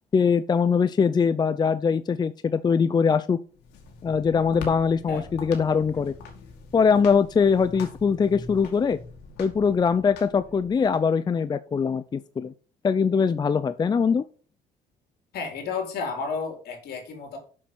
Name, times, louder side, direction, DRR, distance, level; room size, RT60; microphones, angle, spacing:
voice 1, 0.1-3.4 4.0-6.1 6.7-9.0 9.4-12.5 12.8-14.2, left 6 dB, 25° left, 13 dB, 0.5 m, -22 dB
sound 1, 3.5-11.0, left 4 dB, 90° left, 2.2 m, -44 dB
voice 2, 15.3-17.4, left 5 dB, 70° left, 3 dB, 4.1 m, -32 dB
7.4 x 6.8 x 5.9 m, 0.39 s
cardioid pair, 110°, 17 cm